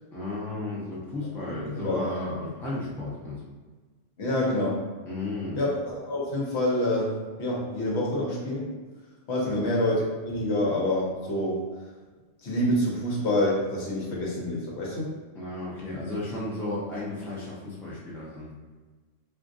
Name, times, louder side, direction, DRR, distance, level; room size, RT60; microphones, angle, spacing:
voice 1, 0.1-3.4 5.1-5.6 9.4-9.7 15.3-18.5, left 2 dB, ahead, -7 dB, 0.5 m, -33 dB
voice 2, 4.2-4.8 5.6-8.7 9.3-11.6 12.4-15.1, left 1 dB, 60° left, -4 dB, 1.0 m, -27 dB
3.6 x 2.5 x 2.5 m, 1.3 s
omnidirectional pair, 1.3 m